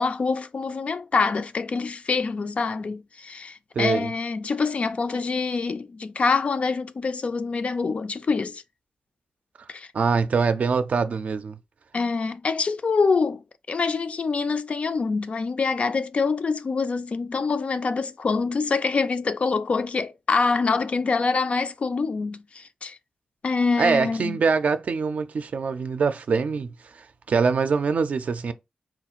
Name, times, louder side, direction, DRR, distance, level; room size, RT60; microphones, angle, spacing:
voice 1, 0.0-8.6 9.7-9.9 11.9-23.0 23.4-24.4, left 4 dB, 50° left, 0.3 m, -25 dB
voice 2, 3.8-4.1 9.9-11.6 23.8-26.7 26.9-28.5, right 5 dB, 65° right, 0.4 m, -24 dB
3.8 x 2.4 x 2.8 m
wide cardioid pair, 100°, 3 cm